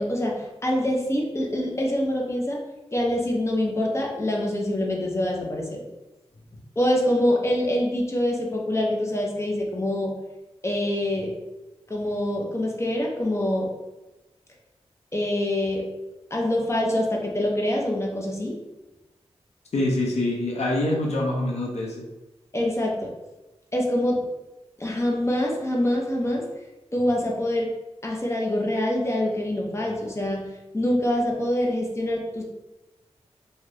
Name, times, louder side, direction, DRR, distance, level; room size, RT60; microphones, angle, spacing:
voice 1, 0.0-2.6 2.9-5.8 6.8-10.1 10.6-11.3 11.9-13.7 15.1-15.8 16.3-18.6 22.5-23.1 23.7-24.2 24.8-26.5 26.9-27.7 28.0-30.5 30.7-32.4, left 1 dB, 25° left, -1 dB, 0.7 m, -25 dB
voice 2, 19.7-21.9, left 1 dB, 70° left, -2 dB, 0.6 m, -25 dB
2.7 x 2.4 x 3.3 m, 1.0 s
wide cardioid pair, 70°, 11 cm